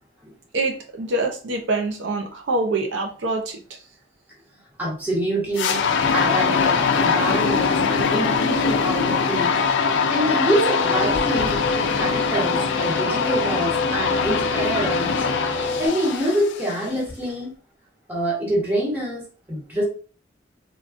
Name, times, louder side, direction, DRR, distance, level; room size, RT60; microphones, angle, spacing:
voice 1, 0.5-3.8, right 2 dB, 80° right, 3 dB, 0.5 m, -25 dB
voice 2, 4.8-9.6 10.1-15.2 15.8-17.5 18.1-19.8, right 1 dB, 10° right, -5 dB, 1.2 m, -26 dB
sound 1, 5.6-16.9, left 5 dB, 75° left, 0.4 m, -22 dB
sound 2, 10.8-15.9, left 2 dB, 10° left, 0.7 m, -29 dB
3.5 x 2.3 x 2.4 m, 0.38 s
head